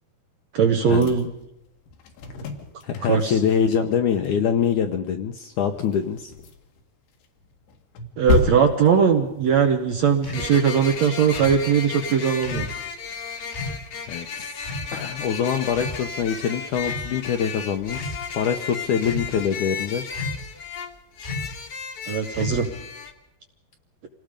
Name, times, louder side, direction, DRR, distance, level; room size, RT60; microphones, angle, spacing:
voice 1, 0.5-1.3 3.1-3.4 8.2-12.7 22.1-22.7, right 7 dB, 60° right, 4 dB, 1.9 m, -20 dB
sound 1, 0.9-3.5 3.7-4.3 4.6-4.7 5.4-6.8 7.2-9.6, left 4 dB, 90° left, 3.9 m, -30 dB
voice 2, 2.8-6.3 14.1-20.0, left 7 dB, 75° left, 6 dB, 1.9 m, -24 dB
violin snippet, 8.7-8.8 10.3-23.1, left 6 dB, 55° left, 1.7 m, -34 dB
sound 2, 10.2-10.5 11.3-11.6 12.4-12.7 13.5-13.8 14.6-14.9 15.7-16.3 16.8-17.1 17.8-18.2 19.0-19.4 20.1-20.5 21.2-21.6 22.3-22.8, left 1 dB, 15° left, 1.5 m, -33 dB
27.0 x 18.5 x 5.2 m, 0.86 s
omnidirectional pair, 4.5 m